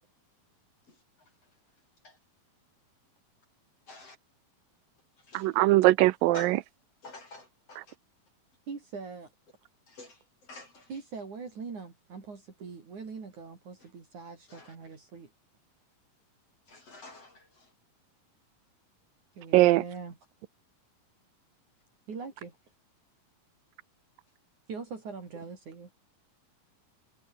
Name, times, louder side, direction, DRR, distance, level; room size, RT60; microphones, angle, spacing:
voice 1, 0.9-1.3 2.0-2.2 3.9-4.2 5.2-5.6 6.3-6.6 7.0-8.0 9.9-10.9 13.8-13.9 14.5-14.8 16.7-17.7, left 2 dB, 40° left, 6.2 m, -49 dB
voice 2, 5.3-6.6 19.5-19.8, right 18 dB, 80° right, 2.4 m, -21 dB
voice 3, 8.7-9.3 10.9-15.3 19.4-20.2 22.1-22.6 24.7-25.9, right 5 dB, 55° right, 5.7 m, -42 dB
omnidirectional pair, 4.1 m